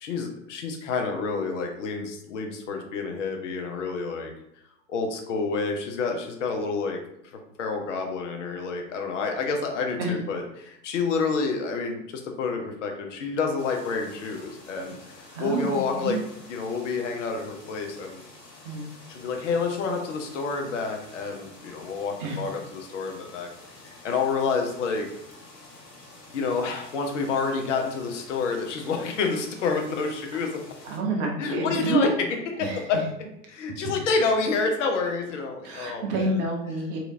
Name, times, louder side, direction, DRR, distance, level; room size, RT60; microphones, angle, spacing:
voice 1, 0.0-4.3 4.9-7.0 7.6-16.2 16.5-18.2 19.1-23.5 23.9-25.1 26.3-30.7 31.4-33.0 33.5-36.4, left 4 dB, 45° left, 3 dB, 0.7 m, -28 dB
sound 1, 13.6-31.0, left 2 dB, 70° left, 1.2 m, -49 dB
voice 2, 15.3-16.2 18.6-18.9 22.2-22.4 30.8-32.1 32.6-33.0 35.6-37.0, right 2 dB, 30° right, 0 dB, 0.7 m, -28 dB
3.1 x 2.8 x 2.7 m, 0.80 s
figure-of-eight pair, 105°, 50 cm